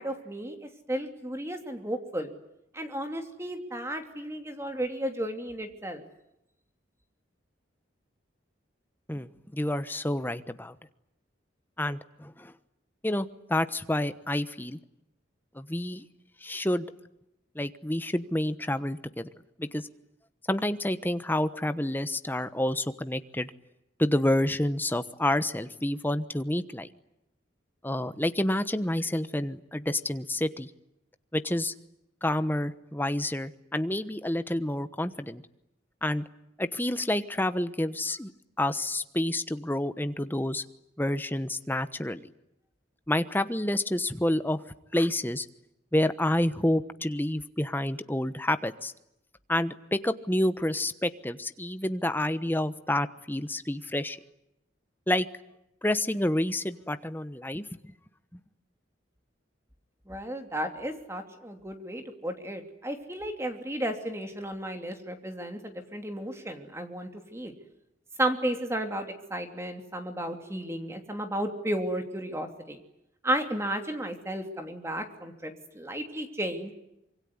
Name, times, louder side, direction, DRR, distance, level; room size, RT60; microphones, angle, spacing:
voice 1, 0.0-2.3 2.7-6.0 60.1-67.5 68.2-72.8 73.2-76.7, right 1 dB, 15° right, 6 dB, 2.9 m, -33 dB
voice 2, 9.1-10.7 11.8-12.5 13.0-14.8 15.5-16.0 16.4-16.9 17.5-19.3 19.6-19.9 20.5-23.5 24.0-26.9 27.8-30.7 31.3-31.7 32.2-35.4 36.0-36.2 36.6-38.3 38.6-40.6 41.0-42.2 43.1-44.6 44.9-45.5 45.9-48.9 49.5-54.2 55.1-55.3 55.8-57.6 58.3-58.4, left 1 dB, 10° left, 11 dB, 1.1 m, -29 dB
26.0 x 24.0 x 9.7 m, 0.84 s
head